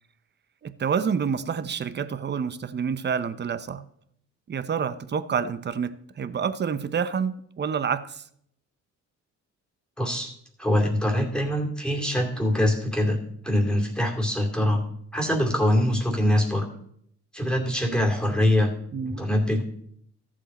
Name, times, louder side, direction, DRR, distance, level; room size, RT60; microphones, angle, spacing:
voice 1, 0.6-3.9 4.5-8.2 18.9-19.2, right 6 dB, 35° right, 0.7 m, -28 dB
voice 2, 10.0-10.3 10.6-14.8 15.1-16.7 17.3-18.7 19.1-19.6, left 1 dB, 5° left, 2.5 m, -23 dB
14.0 x 7.4 x 4.2 m
cardioid pair, 90°, 30 cm